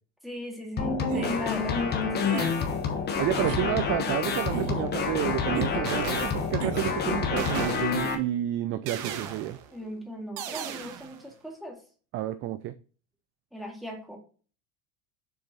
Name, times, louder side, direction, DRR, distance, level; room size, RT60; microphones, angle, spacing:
voice 1, 0.2-2.7 9.7-11.8 13.5-14.2, equal, ahead, 2.0 m, -39 dB
sound 1, 0.8-8.1, left 5 dB, 25° left, 1.3 m, -28 dB
sound 2, 1.1-1.4 2.2-2.6 3.3-3.7 4.5-4.9 5.5-5.8 6.6-7.0, right 8 dB, 70° right, 1.2 m, -34 dB
voice 2, 3.2-9.6 12.1-12.7, right 13 dB, 35° right, 0.4 m, -30 dB
sound 3, 4.9-5.3 5.9-6.8 7.4-8.2 8.9-9.7 10.4-11.2, right 8 dB, 50° right, 1.2 m, -37 dB
7.1 x 4.4 x 3.9 m
supercardioid pair, 135°, 38 cm